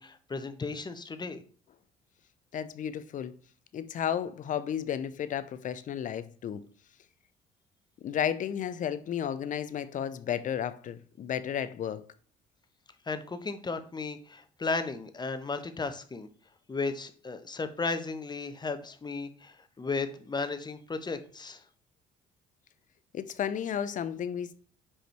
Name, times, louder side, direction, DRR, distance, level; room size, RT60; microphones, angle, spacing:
voice 1, 0.0-1.4 13.1-16.3 16.7-21.6, left 4 dB, 25° left, 1.0 m, -35 dB
voice 2, 2.5-3.3 3.7-6.6 8.0-12.0 23.1-24.6, left 9 dB, 50° left, 0.6 m, -33 dB
5.2 x 4.9 x 4.5 m
hypercardioid pair, 55°, 17 cm